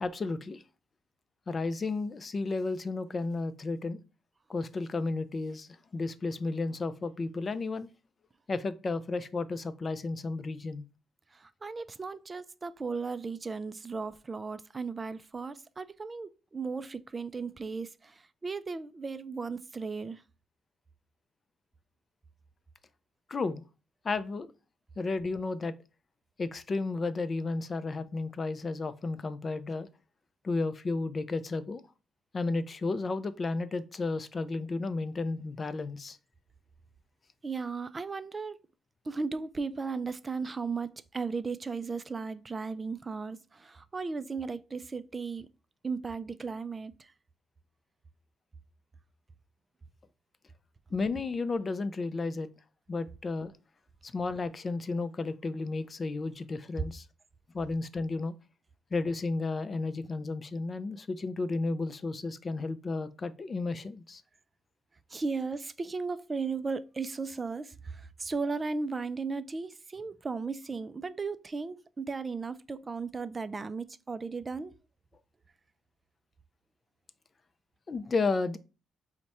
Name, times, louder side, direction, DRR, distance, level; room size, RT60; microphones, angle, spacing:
voice 1, 0.0-0.6 1.5-4.0 4.5-7.9 8.5-10.8 23.3-23.6 24.0-24.5 25.0-25.7 26.4-29.9 30.4-31.8 32.3-36.2 50.9-52.5 52.9-53.5 54.0-57.1 57.5-58.3 58.9-64.2 77.9-78.6, left 3 dB, 35° left, 0.4 m, -33 dB
voice 2, 11.3-20.2 37.4-38.6 39.1-45.5 45.8-47.1 65.1-74.7, right 4 dB, 30° right, 0.3 m, -36 dB
4.6 x 2.1 x 4.1 m
cardioid pair, 90°, 0 cm